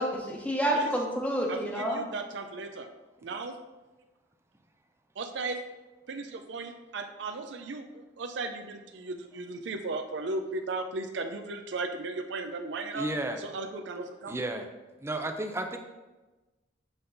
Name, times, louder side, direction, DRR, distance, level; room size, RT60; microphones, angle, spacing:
voice 1, 0.0-2.0, right 1 dB, 10° left, -1 dB, 1.1 m, -29 dB
voice 2, 1.5-2.9 3.2-3.6 5.2-5.6 6.1-13.0 13.4-14.4, right 3 dB, 70° right, 6 dB, 0.5 m, -36 dB
voice 3, 12.9-13.4 14.3-14.7 15.0-15.8, right 1 dB, 15° right, 5 dB, 0.5 m, -32 dB
7.9 x 3.8 x 3.9 m, 1.1 s
head